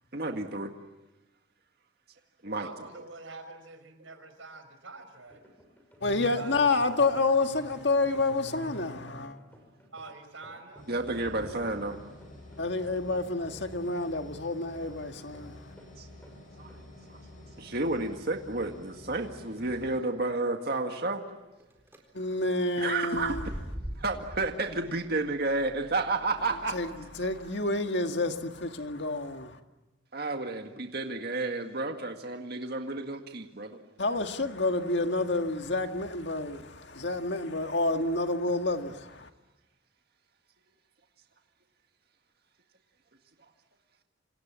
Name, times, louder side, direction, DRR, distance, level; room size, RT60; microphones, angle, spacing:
voice 1, 0.1-0.7 2.4-2.7 10.9-12.0 16.0-16.1 16.6-16.7 17.1-17.2 17.6-21.2 22.8-23.4 24.0-26.8 30.1-33.8, right 2 dB, 50° right, 1.9 m, -31 dB
voice 2, 2.4-5.4 6.4-7.0 9.9-10.9, right 3 dB, 85° right, 5.3 m, -46 dB
sound 1, 5.3-15.9 16.2-16.4 16.7-16.9, equal, 10° left, 6.4 m, -55 dB
voice 3, 6.0-9.4 12.6-15.6 22.1-23.5 26.7-29.6 34.0-39.3, left 2 dB, 60° left, 1.9 m, -29 dB
sound 2, 10.8-20.0, left 1 dB, 40° left, 7.6 m, -49 dB
sound 3, 21.6-22.0 23.1-27.5, equal, 10° right, 4.4 m, -43 dB
28.0 x 27.5 x 7.5 m
head